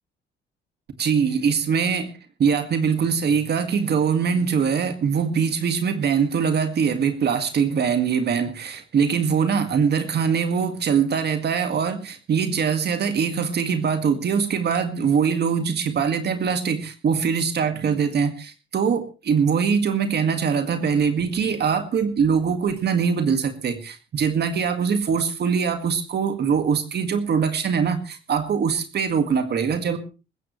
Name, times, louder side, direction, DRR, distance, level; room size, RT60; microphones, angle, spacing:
voice 1, 1.0-2.1 2.4-30.0, right 6 dB, 55° right, 8 dB, 2.0 m, -22 dB
19.5 x 15.5 x 3.2 m, 0.31 s
cardioid pair, 90°, 20 cm